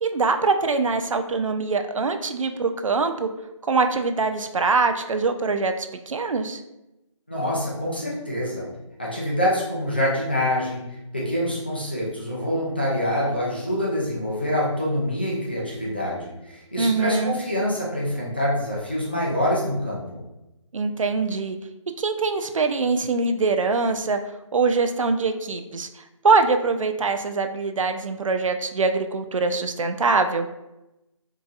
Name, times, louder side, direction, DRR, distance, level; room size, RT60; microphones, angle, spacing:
voice 1, 0.0-3.3 3.6-6.6 16.8-17.3 20.7-21.6 22.0-24.2 24.5-30.5, right 4 dB, 75° right, 7 dB, 0.4 m, -23 dB
voice 2, 7.3-8.7 9.0-10.8 11.1-20.2, left 1 dB, 20° left, -6 dB, 0.4 m, -25 dB
3.9 x 2.7 x 2.3 m, 0.94 s
figure-of-eight pair, 170°, 17 cm